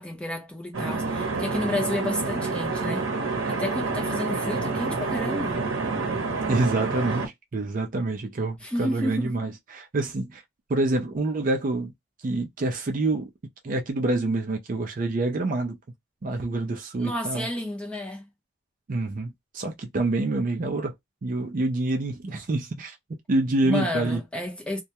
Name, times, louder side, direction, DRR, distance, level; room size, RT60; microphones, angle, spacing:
voice 1, 0.0-5.6 8.6-9.4 17.0-18.3 23.6-24.8, left 1 dB, 5° left, 0.6 m, -31 dB
sound 1, 0.7-7.3, right 3 dB, 80° right, 0.8 m, -28 dB
voice 2, 6.5-10.4 10.7-11.9 12.2-13.3 13.6-15.8 16.2-17.5 18.9-20.9 21.2-23.0 23.3-24.2, right 2 dB, 40° right, 0.4 m, -27 dB
2.2 x 2.1 x 2.8 m
head